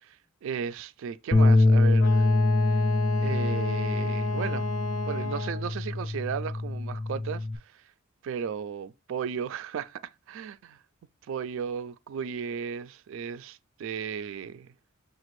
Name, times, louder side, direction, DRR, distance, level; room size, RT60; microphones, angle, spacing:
voice 1, 0.0-2.3 3.2-4.7 5.1-7.8 8.2-10.8 11.3-14.7, right 7 dB, 65° right, 0.3 m, -35 dB
Bass guitar, 1.3-7.6, left 2 dB, 25° left, 0.3 m, -24 dB
Wind instrument woodwind instrument, 2.0-5.7, left 4 dB, 80° left, 0.5 m, -33 dB
5.8 x 2.4 x 3.0 m
head